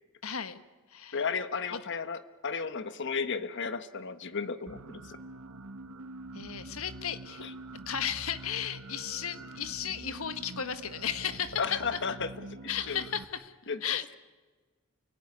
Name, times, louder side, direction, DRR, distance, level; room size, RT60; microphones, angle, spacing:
voice 1, 0.2-0.6 0.9-1.2 1.7-1.8 6.3-7.5 7.9-11.6 11.9-12.0 12.7-13.5 13.8-14.2, left 8 dB, 75° left, 11 dB, 1.4 m, -35 dB
voice 2, 1.1-5.2 7.4-7.5 11.6-12.3 12.6-13.0 13.7-13.8, left 5 dB, 55° left, 12 dB, 1.2 m, -34 dB
sound 1, 4.7-13.3, right 2 dB, 80° right, 1.5 m, -45 dB
29.0 x 18.0 x 9.7 m, 1.3 s
head